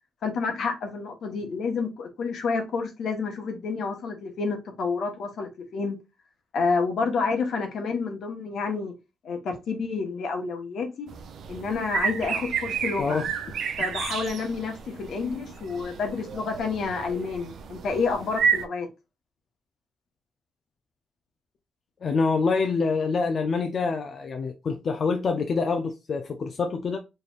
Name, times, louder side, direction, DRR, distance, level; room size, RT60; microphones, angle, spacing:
voice 1, 0.2-6.0 6.5-8.9 9.2-11.1 11.5-13.2 13.8-18.9, left 4 dB, 75° left, 1.2 m, -29 dB
sound 1, 11.1-18.7, right 6 dB, 75° right, 0.6 m, -31 dB
voice 2, 13.0-13.3 22.0-27.0, left 4 dB, 50° left, 0.5 m, -26 dB
4.2 x 3.3 x 2.4 m
cardioid pair, 90°, 0 cm